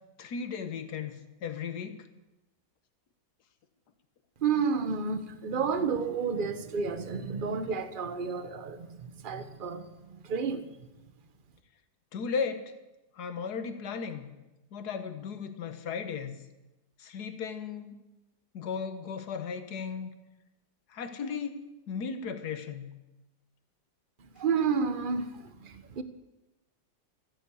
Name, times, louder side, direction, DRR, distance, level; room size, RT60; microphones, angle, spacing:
voice 1, 0.2-2.1 12.1-12.7 13.1-14.3 14.7-16.4 17.0-18.0 18.5-20.1 20.9-22.9, left 6 dB, 60° left, 1.7 m, -36 dB
voice 2, 4.4-10.7 24.4-26.0, right 5 dB, 35° right, 0.9 m, -31 dB
14.0 x 10.5 x 8.5 m
omnidirectional pair, 2.0 m